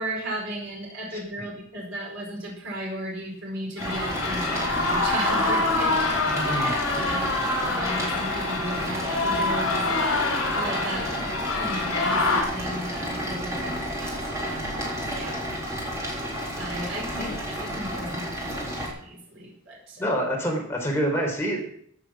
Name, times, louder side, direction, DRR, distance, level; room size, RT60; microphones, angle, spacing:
voice 1, 0.0-6.2 6.4-7.2 7.7-10.0 10.5-14.8 15.1-16.1 16.5-20.0, right 1 dB, 60° right, -2 dB, 4.8 m, -35 dB
sound 1, 3.8-12.4, left 3 dB, 75° left, 4.3 m, -26 dB
sound 2, 3.8-18.9, equal, 15° right, 3.8 m, -32 dB
voice 2, 6.3-6.7 17.2-17.3 20.0-21.7, equal, 10° left, -1 dB, 3.9 m, -27 dB
15.0 x 7.9 x 6.0 m, 0.66 s
head